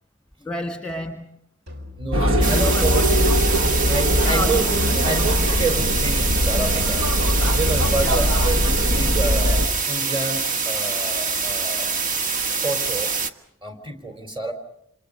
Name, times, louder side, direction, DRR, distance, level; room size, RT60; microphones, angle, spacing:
voice 1, 0.4-1.4 2.5-3.2 4.2-5.2 5.4-5.5 8.0-8.4, equal, 5° left, 1.5 m, -30 dB
sound 1, 1.7-7.1, left 1 dB, 55° right, 4.3 m, -38 dB
voice 2, 2.0-3.0 3.9-4.7 5.0-7.0 7.5-11.9 12.6-13.1 13.6-14.5, right 3 dB, 25° right, 3.8 m, -28 dB
sound 2, 2.1-9.7, equal, 85° right, 1.9 m, -21 dB
sound 3, 2.4-13.3, right 4 dB, 40° right, 1.4 m, -25 dB
28.5 x 27.0 x 5.2 m
head